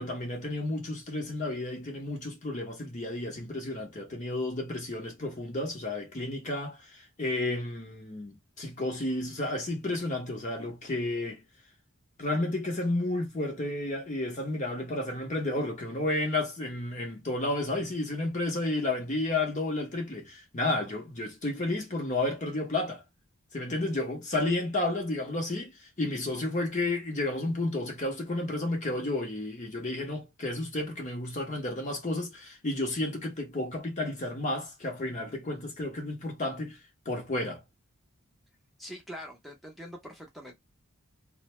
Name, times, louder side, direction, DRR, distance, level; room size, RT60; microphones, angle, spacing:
voice 1, 0.0-11.4 12.2-23.0 23.5-25.7 26.0-36.8 37.1-37.6, left 2 dB, 35° left, 0.8 m, -32 dB
voice 2, 38.8-40.5, equal, ahead, 0.6 m, -43 dB
2.5 x 2.1 x 3.0 m
head